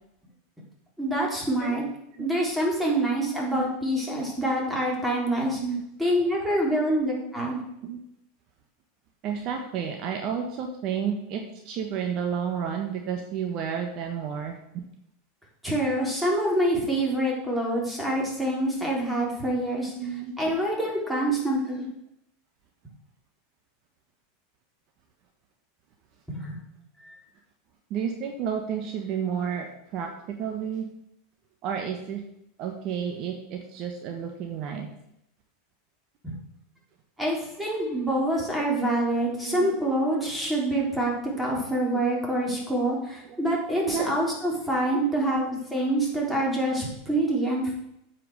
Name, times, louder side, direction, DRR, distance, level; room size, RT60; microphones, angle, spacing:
voice 1, 1.0-1.8 2.2-5.6 6.0-7.6 15.6-19.9 20.4-21.9 26.3-26.6 27.0-27.1 36.2-36.3 37.2-47.7, right 1 dB, 5° right, -3 dB, 4.0 m, -26 dB
voice 2, 4.1-4.5 5.6-5.8 7.8-8.0 9.2-14.8 18.1-18.2 20.0-20.3 27.9-30.1 30.4-30.9 31.6-32.2 32.6-34.9 38.6-38.7 39.4-39.7 43.3-43.4 43.9-44.1 44.9-45.0 45.3-45.4, right 7 dB, 50° right, 4 dB, 1.4 m, -31 dB
8.8 x 5.8 x 6.6 m, 0.80 s
hypercardioid pair, 110°, 0 cm